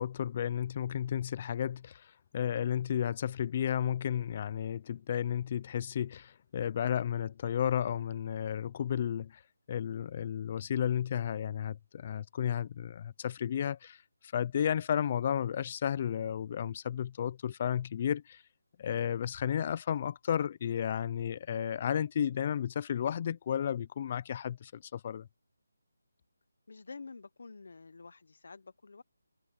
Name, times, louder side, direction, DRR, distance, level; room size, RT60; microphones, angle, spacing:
voice 1, 0.0-9.4 9.7-14.0 14.3-18.4 18.8-25.3, left 9 dB, 20° left, 0.4 m, -33 dB
voice 2, 26.7-29.0, left 4 dB, 50° left, 1.0 m, -49 dB
hypercardioid pair, 180°, 0 cm